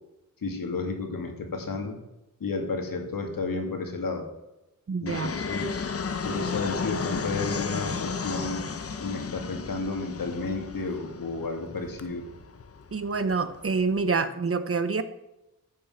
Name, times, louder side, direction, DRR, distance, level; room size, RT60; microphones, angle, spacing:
voice 1, 0.4-2.0 2.4-4.3 5.0-5.9 6.2-8.7 9.0-12.2, left 3 dB, 70° left, 4 dB, 2.5 m, -32 dB
voice 2, 4.9-5.3 12.9-15.0, right 4 dB, 40° right, 11 dB, 0.9 m, -27 dB
Fixed-wing aircraft airplane, 5.1-14.1, left 5 dB, 40° left, 0.9 m, -34 dB
14.0 x 6.7 x 8.0 m, 0.95 s
wide cardioid pair, 160°, 36 cm